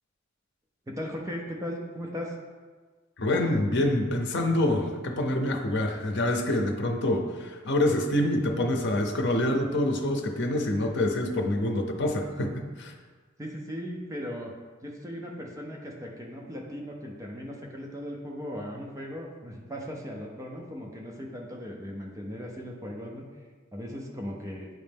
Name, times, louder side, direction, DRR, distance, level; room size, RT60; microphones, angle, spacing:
voice 1, 0.9-2.4 13.4-14.5 14.8-23.2 23.7-24.7, equal, 15° right, -1 dB, 0.6 m, -37 dB
voice 2, 3.2-12.9, left 1 dB, 60° left, 3 dB, 0.7 m, -26 dB
9.0 x 3.2 x 3.5 m, 1.4 s
head